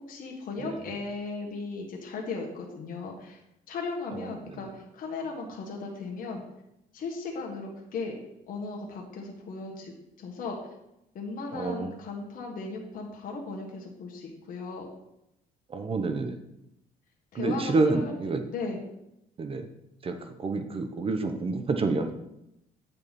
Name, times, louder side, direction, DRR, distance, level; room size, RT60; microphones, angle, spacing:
voice 1, 0.1-3.4 3.7-6.4 6.9-8.2 8.5-9.9 10.2-10.6 11.1-14.9 17.3-18.1 18.5-18.8, left 4 dB, 55° left, -1 dB, 1.6 m, -36 dB
voice 2, 4.1-4.6 11.5-11.9 15.7-16.4 17.3-18.4 19.4-19.7 20.0-22.1, right 3 dB, 35° right, 8 dB, 0.8 m, -29 dB
8.8 x 5.4 x 4.2 m, 0.83 s
cardioid pair, 110°, 17 cm